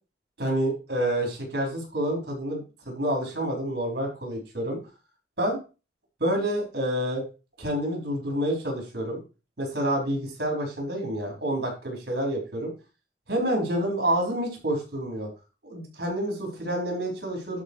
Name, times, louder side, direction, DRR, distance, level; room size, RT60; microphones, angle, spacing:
voice 1, 0.4-4.8 5.4-5.6 6.2-7.2 7.6-9.2 9.6-12.7 13.3-15.3 15.6-17.6, right 1 dB, 60° right, 1 dB, 4.6 m, -28 dB
11.5 x 4.7 x 4.9 m, 0.32 s
head